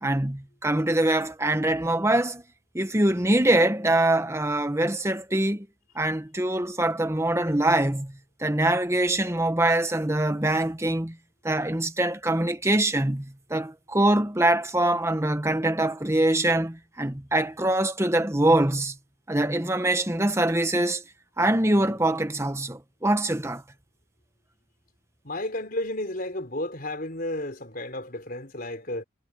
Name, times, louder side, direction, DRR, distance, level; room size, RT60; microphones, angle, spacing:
voice 1, 0.0-2.4 2.7-5.7 5.9-11.2 11.4-18.9 19.3-21.0 21.4-23.6, right 1 dB, 15° right, 1.3 m, -24 dB
voice 2, 25.2-29.0, left 1 dB, 45° left, 4.2 m, -32 dB
head